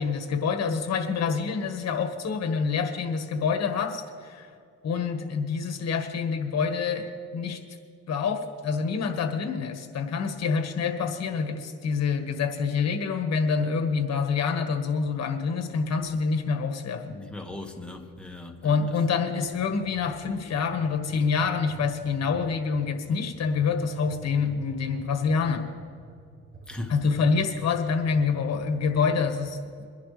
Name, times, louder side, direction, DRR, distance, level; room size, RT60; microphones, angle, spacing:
voice 1, 0.0-4.5 4.8-7.6 8.1-17.2 18.6-25.7 26.9-30.0, left 5 dB, 60° left, 5 dB, 1.6 m, -27 dB
voice 2, 17.1-18.8 26.7-26.9, left 2 dB, 5° left, 2 dB, 1.8 m, -39 dB
sound 1, 19.4-29.4, right 2 dB, 45° right, 3.7 m, -48 dB
23.0 x 10.5 x 3.4 m, 2.2 s
cardioid pair, 90°, 30 cm